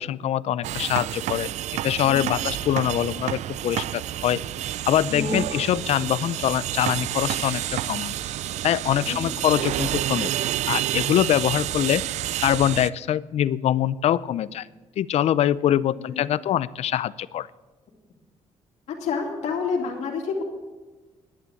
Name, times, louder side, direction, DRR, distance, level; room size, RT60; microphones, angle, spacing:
voice 1, 0.0-1.5 1.8-4.4 4.9-8.1 8.6-12.0 12.4-14.7 15.0-17.5, left 11 dB, 65° left, 19 dB, 0.5 m, -24 dB
sound 1, 0.6-12.9, right 13 dB, 80° right, 0.4 m, -29 dB
voice 2, 18.9-20.4, left 5 dB, 80° left, 0 dB, 2.6 m, -29 dB
11.0 x 10.0 x 7.1 m, 1.3 s
cardioid pair, 130°, 12 cm